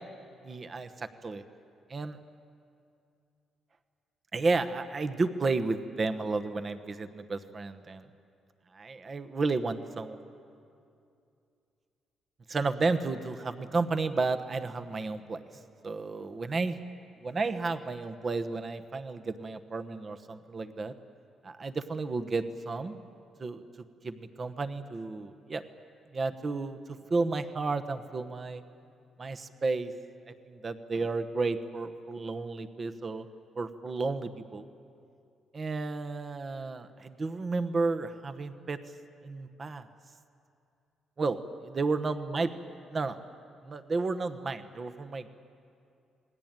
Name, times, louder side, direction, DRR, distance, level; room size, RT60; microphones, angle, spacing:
voice 1, 0.4-1.4 1.9-2.2 4.3-8.1 8.7-10.2 12.5-15.4 15.8-16.8 17.2-20.9 21.4-23.0 23.4-23.6 24.0-25.6 26.1-28.6 29.2-29.9 30.5-33.3 33.6-34.7 35.5-38.8 39.2-39.9 41.2-41.4 41.7-42.5 42.9-43.2 43.6-45.3, right 3 dB, 30° right, 10 dB, 1.1 m, -32 dB
28.0 x 20.0 x 9.0 m, 2.5 s
cardioid pair, 135°, 0 cm